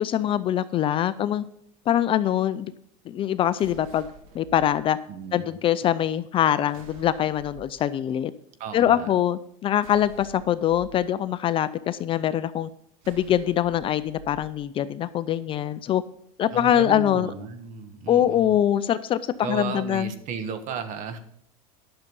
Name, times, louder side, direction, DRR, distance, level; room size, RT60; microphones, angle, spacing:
voice 1, 0.0-1.4 1.9-2.7 3.1-4.1 4.3-5.0 5.3-8.3 8.7-12.7 13.1-16.0 16.4-17.3 18.1-20.1, left 11 dB, 30° left, 14 dB, 0.4 m, -23 dB
sound 1, 3.6-4.7 6.7-7.7 9.8-10.9 13.0-14.5, right 4 dB, 80° right, 2.1 m, -47 dB
voice 2, 5.1-5.5 8.6-9.1 16.5-18.6 19.4-21.2, right 6 dB, 45° right, 10 dB, 1.3 m, -34 dB
11.5 x 6.6 x 5.3 m, 0.72 s
supercardioid pair, 135°, 17 cm